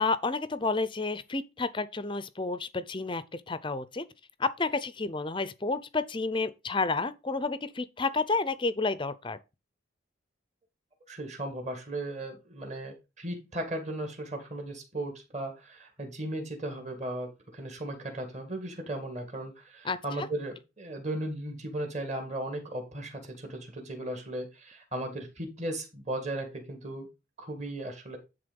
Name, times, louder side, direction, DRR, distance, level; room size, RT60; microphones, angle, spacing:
voice 1, 0.0-4.0 4.4-9.4 19.8-20.3, left 3 dB, 25° left, 0.5 m, -30 dB
voice 2, 11.1-27.1 27.4-28.2, right 1 dB, 35° right, 2.2 m, -36 dB
10.5 x 3.6 x 5.2 m
head